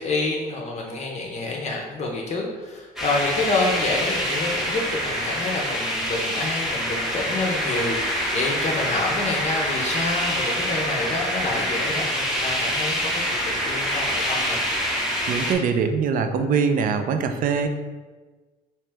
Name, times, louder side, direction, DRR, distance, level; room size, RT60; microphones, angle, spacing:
voice 1, 0.0-14.6, left 2 dB, 40° left, 0 dB, 0.6 m, -28 dB
sound 1, 3.0-15.5, equal, ahead, 0.8 m, -26 dB
voice 2, 15.3-17.7, right 5 dB, 55° right, 8 dB, 0.4 m, -22 dB
3.1 x 2.9 x 3.4 m, 1.3 s
cardioid pair, 110°, 17 cm